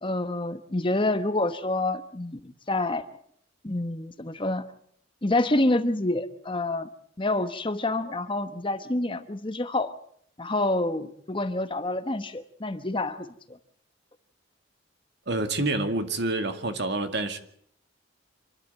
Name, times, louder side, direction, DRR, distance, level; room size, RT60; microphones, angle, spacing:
voice 1, 0.0-3.0 3.6-4.6 5.2-6.9 7.2-9.9 10.4-13.6, left 2 dB, 25° left, 1.1 m, -27 dB
voice 2, 15.3-17.4, right 2 dB, 60° right, 2.2 m, -27 dB
27.0 x 12.0 x 9.2 m
head